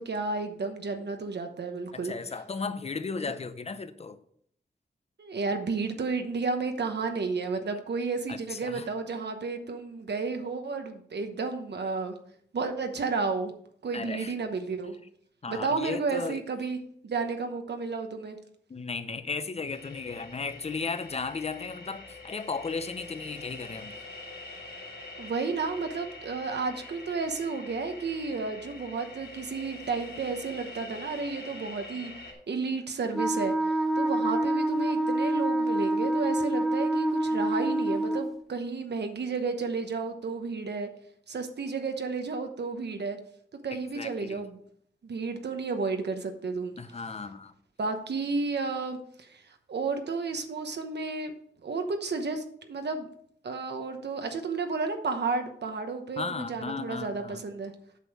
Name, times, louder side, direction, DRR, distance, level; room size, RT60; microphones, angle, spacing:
voice 1, 0.0-2.1 3.2-3.3 5.2-12.2 12.5-13.5 13.8-15.0 15.5-16.8 17.0-18.4 25.2-32.1 32.5-33.5 33.9-40.9 41.3-43.2 43.6-44.6 45.0-46.8 47.8-49.4 49.7-51.3 51.6-53.1 53.4-57.7, right 4 dB, 80° right, 6 dB, 1.0 m, -32 dB
voice 2, 1.9-4.2 8.3-8.9 13.9-14.3 15.4-16.4 18.7-23.9 43.7-44.4 46.8-47.5 56.2-57.4, left 4 dB, 35° left, 11 dB, 0.6 m, -35 dB
sound 1, 19.7-32.3, left 2 dB, 70° left, 2.8 m, -45 dB
Wind instrument woodwind instrument, 33.1-38.3, right 1 dB, ahead, 0.9 m, -27 dB
8.2 x 6.3 x 4.7 m, 0.65 s
wide cardioid pair, 135°, 17 cm